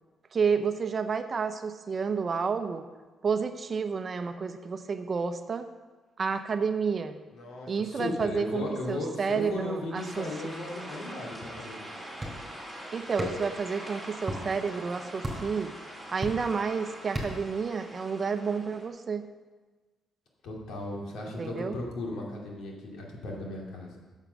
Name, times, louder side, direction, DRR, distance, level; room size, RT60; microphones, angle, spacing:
voice 1, 0.3-2.9 3.2-5.7 6.2-7.2 7.7-10.3 12.9-15.7 16.1-19.3 21.4-21.8, right 5 dB, 40° right, 9 dB, 0.7 m, -30 dB
voice 2, 7.3-12.0 20.4-24.0, left 2 dB, 75° left, -2 dB, 2.6 m, -36 dB
sound 1, 10.0-18.9, equal, 5° left, 2.9 m, -44 dB
sound 2, 12.2-12.5 13.2-13.6 14.2-14.4 15.2-15.6 16.2-16.6 17.2-17.5, equal, 15° right, 4.1 m, -33 dB
9.1 x 7.3 x 6.8 m, 1.3 s
cardioid pair, 90°, 0 cm